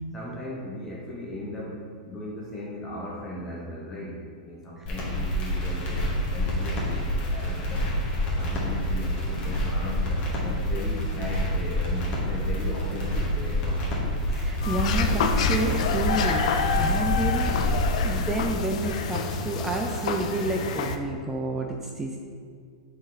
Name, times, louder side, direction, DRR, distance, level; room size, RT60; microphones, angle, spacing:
voice 1, 0.1-7.9 8.4-13.8, equal, 10° left, -7 dB, 0.8 m, -37 dB
sound 1, 4.9-18.1, equal, 30° left, 1.4 m, -27 dB
voice 2, 14.3-22.2, right 2 dB, 10° right, 1 dB, 0.3 m, -30 dB
sound 2, 14.6-21.0, left 5 dB, 70° left, 0.5 m, -27 dB
5.2 x 4.0 x 4.7 m, 2.2 s
supercardioid pair, 155°, 4 cm